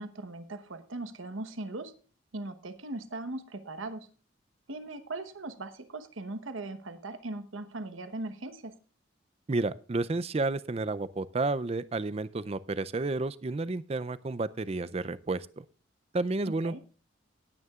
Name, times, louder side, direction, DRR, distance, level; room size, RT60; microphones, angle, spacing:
voice 1, 0.0-1.9 2.3-4.1 4.7-8.8 16.5-16.8, right 2 dB, 85° right, 10 dB, 1.1 m, -39 dB
voice 2, 9.5-15.6 16.1-16.8, right 3 dB, 30° right, 16 dB, 0.4 m, -31 dB
18.5 x 9.5 x 2.4 m, 0.36 s
head